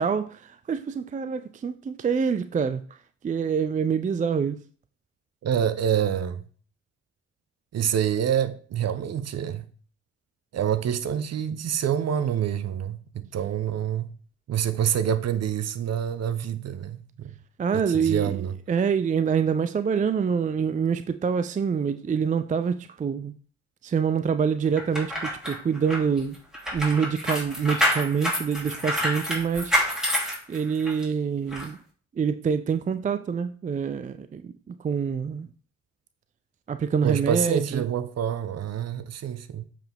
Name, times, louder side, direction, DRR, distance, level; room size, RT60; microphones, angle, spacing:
voice 1, 0.0-2.8 3.2-4.6 17.6-18.4 18.7-23.3 23.8-26.4 26.7-29.7 30.5-31.8 32.2-35.5 36.7-37.8, right 6 dB, 20° right, 0.5 m, -26 dB
voice 2, 5.4-6.4 7.7-9.6 10.5-14.1 14.5-17.3 17.7-18.6 37.0-39.6, right 9 dB, 45° right, 0.8 m, -27 dB
sound 1, 24.8-31.0 31.5-31.7, equal, ahead, 2.9 m, -28 dB
7.6 x 5.0 x 3.5 m
hypercardioid pair, 50°, 37 cm